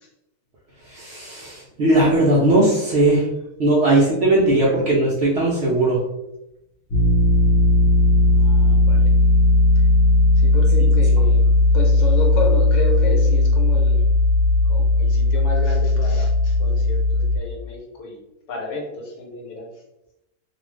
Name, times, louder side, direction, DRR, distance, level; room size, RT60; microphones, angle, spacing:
voice 1, 0.9-3.3 3.6-6.0, right 2 dB, 65° right, -4 dB, 0.6 m, -18 dB
sound 1, 6.9-17.4, left 2 dB, 55° left, 0.8 m, -16 dB
voice 2, 8.3-9.1 9.7-9.8 10.4-11.5 11.7-14.0 14.7-17.0 17.3-18.2 18.5-19.7, left 2 dB, 75° left, 0 dB, 1.2 m, -31 dB
2.4 x 2.4 x 3.2 m, 0.91 s
omnidirectional pair, 1.6 m